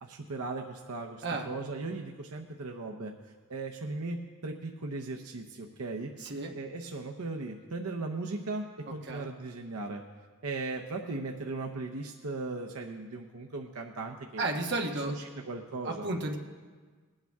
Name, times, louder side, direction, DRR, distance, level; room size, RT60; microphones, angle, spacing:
voice 1, 0.0-10.0 10.4-14.4 15.1-16.1, right 3 dB, 80° right, 2 dB, 0.8 m, -38 dB
voice 2, 6.2-6.5 9.1-9.3 14.4-15.1 15.8-16.4, right 2 dB, 50° right, 1 dB, 1.3 m, -32 dB
20.5 x 8.8 x 3.6 m, 1.5 s
head